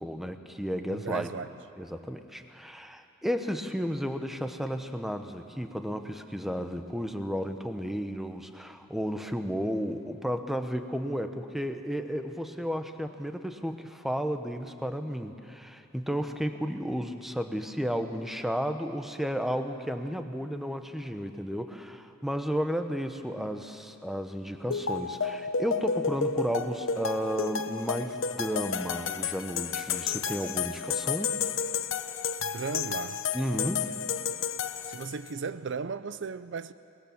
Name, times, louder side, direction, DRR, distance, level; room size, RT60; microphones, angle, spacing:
voice 1, 0.0-1.3 1.8-31.4 33.3-33.9, equal, ahead, 1.0 m, -33 dB
voice 2, 0.9-1.6 32.4-33.3 34.9-36.7, right 5 dB, 65° right, 0.5 m, -36 dB
sound 1, 24.7-35.3, left 6 dB, 80° left, 0.8 m, -31 dB
22.5 x 20.5 x 7.1 m
head